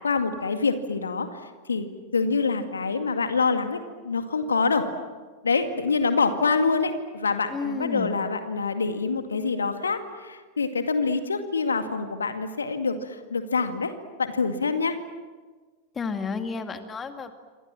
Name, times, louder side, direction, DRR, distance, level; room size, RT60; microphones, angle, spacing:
voice 1, 0.0-4.9 5.4-13.9 14.2-15.0, left 4 dB, 75° left, 8 dB, 2.1 m, -26 dB
voice 2, 7.5-8.1 16.0-17.3, left 4 dB, 20° left, 7 dB, 2.2 m, -31 dB
28.5 x 25.0 x 7.6 m, 1.4 s
figure-of-eight pair, 90°, 0 cm